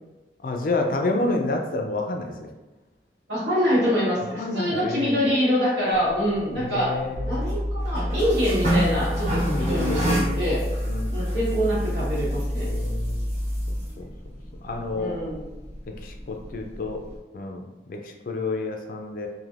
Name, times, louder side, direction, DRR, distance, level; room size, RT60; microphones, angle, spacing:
voice 1, 0.4-2.5 4.3-5.2 6.6-7.5 9.4-10.4 10.9-11.4 12.6-13.2 13.7-14.1 14.6-15.2 15.9-17.0 17.3-19.3, left 2 dB, 50° left, 3 dB, 0.3 m, -29 dB
voice 2, 3.3-6.9 7.2-10.6 11.1-12.7 14.9-15.4, equal, 75° right, -8 dB, 1.4 m, -25 dB
sound 1, 5.9-17.2, right 1 dB, 40° right, 1.2 m, -32 dB
sound 2, 7.1-13.9, equal, 20° right, 0.5 m, -28 dB
3.2 x 2.6 x 2.4 m, 1.1 s
head